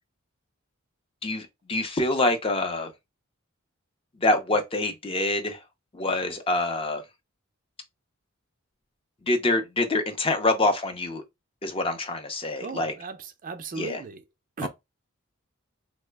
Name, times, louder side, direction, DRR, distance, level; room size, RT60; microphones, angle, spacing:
voice 1, 1.2-2.9 4.2-5.6 5.9-7.0 9.3-11.2 11.6-12.9 13.8-14.0 14.6-14.7, left 2 dB, 25° left, 0.5 m, -26 dB
voice 2, 12.6-14.2 14.6-14.7, right 4 dB, 40° right, 0.4 m, -36 dB
3.1 x 2.0 x 3.4 m
head